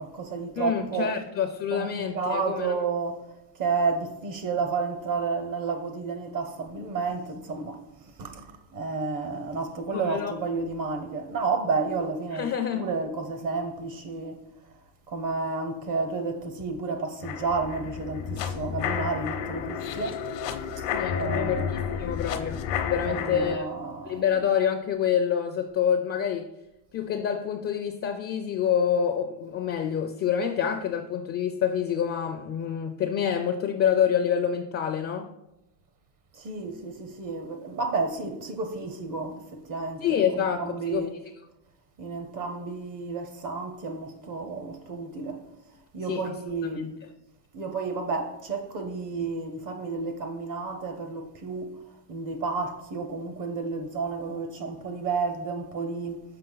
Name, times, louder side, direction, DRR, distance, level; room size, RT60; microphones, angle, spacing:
voice 1, 0.0-1.2 1.7-3.2 3.6-7.8 8.2-8.4 8.7-12.5 12.8-14.4 15.1-20.2 20.8-22.1 23.1-24.2 36.3-41.1 42.0-45.4 45.9-46.9 47.5-51.8 52.1-56.2, right 4 dB, 45° right, 0.8 m, -31 dB
voice 2, 0.6-2.7 9.9-10.4 12.3-12.9 20.9-23.7 24.1-26.5 26.9-35.3 40.0-41.1 46.0-46.3 46.8-46.9, left 8 dB, 35° left, 0.4 m, -27 dB
sound 1, 17.2-23.6, left 8 dB, 70° left, 0.8 m, -31 dB
6.7 x 5.1 x 3.9 m
cardioid pair, 150°, 45 cm